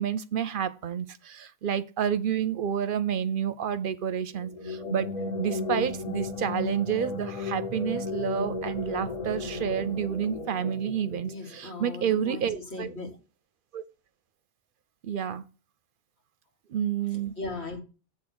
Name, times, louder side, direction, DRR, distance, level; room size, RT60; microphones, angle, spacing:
voice 1, 0.0-5.1 5.4-12.9 13.7-13.8 15.0-15.4 16.7-17.3, right 8 dB, 60° right, 0.7 m, -29 dB
sound 1, 4.4-11.8, left 3 dB, 40° left, 0.9 m, -34 dB
voice 2, 11.3-13.2 17.0-17.8, left 2 dB, 85° left, 2.4 m, -38 dB
7.7 x 3.6 x 6.0 m
omnidirectional pair, 1.1 m